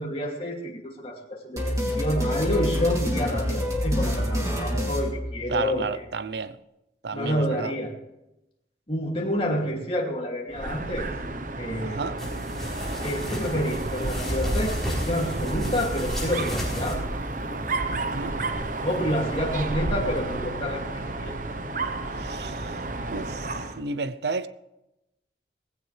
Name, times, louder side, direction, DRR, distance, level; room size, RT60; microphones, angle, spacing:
voice 1, 0.0-1.6 1.9-6.0 7.1-7.9 8.9-11.1 11.6-12.0 13.0-17.0 18.8-20.8 21.2-21.4, equal, 30° left, 2.6 m, -28 dB
sound 1, 1.6-5.9, equal, 20° right, 2.9 m, -27 dB
voice 2, 5.5-6.6 7.0-7.7 11.8-12.2 17.9-18.4 22.2-22.7 23.1-24.5, right 4 dB, 70° right, 0.7 m, -32 dB
Dog, 10.5-23.8, right 2 dB, 45° right, 1.0 m, -31 dB
sound 2, 12.2-16.9, equal, ahead, 4.7 m, -32 dB
18.0 x 16.5 x 3.4 m
head